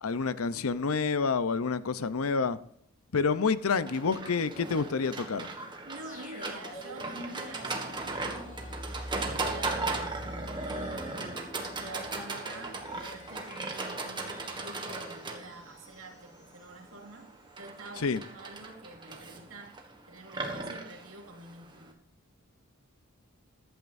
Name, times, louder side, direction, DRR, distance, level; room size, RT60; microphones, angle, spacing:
voice 1, 0.0-2.6 3.1-5.5 18.0-18.2, left 4 dB, 85° left, 0.7 m, -28 dB
Livestock farm animals working animals, 3.9-21.9, right 3 dB, 20° right, 1.6 m, -38 dB
voice 2, 5.8-8.6 9.0-10.1 10.6-19.8 20.1-21.9, right 2 dB, 75° right, 2.7 m, -48 dB
sound 1, 6.0-16.8 17.1-17.2, equal, 35° left, 2.9 m, -46 dB
14.5 x 11.5 x 2.6 m
head